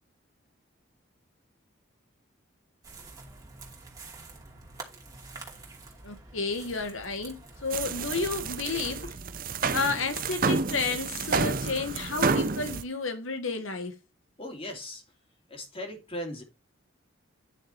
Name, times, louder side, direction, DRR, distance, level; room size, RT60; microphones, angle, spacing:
sound 1, 2.8-9.2, right 3 dB, 20° right, 2.6 m, -47 dB
voice 1, 6.0-9.2 9.7-14.0, left 4 dB, 90° left, 1.6 m, -31 dB
sound 2, 7.7-12.8, right 4 dB, 45° right, 0.7 m, -29 dB
voice 2, 14.4-15.0 15.5-16.4, left 1 dB, 30° left, 2.8 m, -38 dB
10.5 x 6.5 x 4.4 m
head